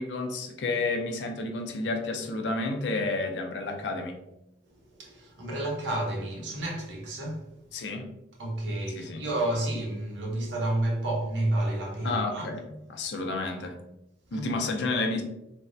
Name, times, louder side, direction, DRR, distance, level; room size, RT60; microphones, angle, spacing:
voice 1, 0.0-4.1 7.7-8.1 9.0-9.2 12.0-12.6 12.9-13.8 14.3-15.2, left 3 dB, 70° left, 0.5 m, -30 dB
voice 2, 4.7-7.5 8.4-12.5 14.3-14.5, right 1 dB, 80° right, 0.8 m, -30 dB
3.3 x 2.0 x 2.6 m
head